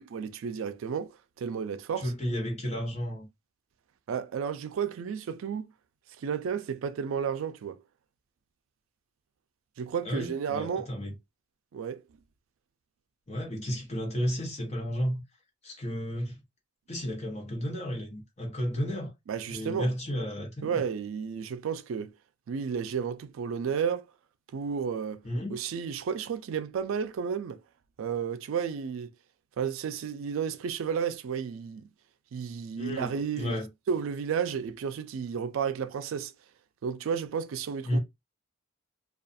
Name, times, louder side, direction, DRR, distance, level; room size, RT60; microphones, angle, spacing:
voice 1, 0.1-1.1 1.4-2.1 4.1-5.7 6.2-7.8 9.8-10.9 11.7-12.0 19.3-19.9 20.6-22.1 22.5-24.0 24.5-25.2 25.5-27.6 28.0-29.1 29.6-31.9 32.3-33.6 33.9-36.3 36.8-38.0, right 7 dB, 80° right, 0.3 m, -32 dB
voice 2, 2.0-3.3 10.0-11.1 13.3-15.2 15.6-16.3 16.9-19.1 19.5-20.8 25.2-25.6 32.8-33.1 33.4-33.7 37.9-38.0, equal, 35° left, 0.8 m, -32 dB
2.4 x 2.3 x 2.6 m
head